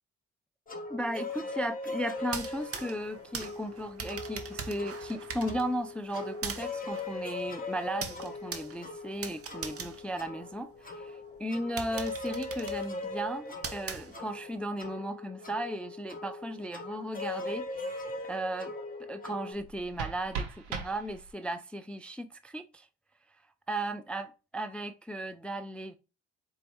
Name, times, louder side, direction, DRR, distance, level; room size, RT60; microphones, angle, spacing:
sound 1, 0.7-19.5, left 3 dB, 20° left, 1.0 m, -40 dB
voice 1, 0.9-18.7 19.1-22.9 23.7-24.3 24.5-25.9, right 1 dB, 5° left, 0.3 m, -36 dB
sound 2, 2.2-10.9 11.4-11.5 11.8-14.5, right 6 dB, 40° right, 0.8 m, -42 dB
sound 3, 19.5-21.6, right 5 dB, 75° right, 1.0 m, -39 dB
4.4 x 2.7 x 2.9 m
hypercardioid pair, 55°, 38 cm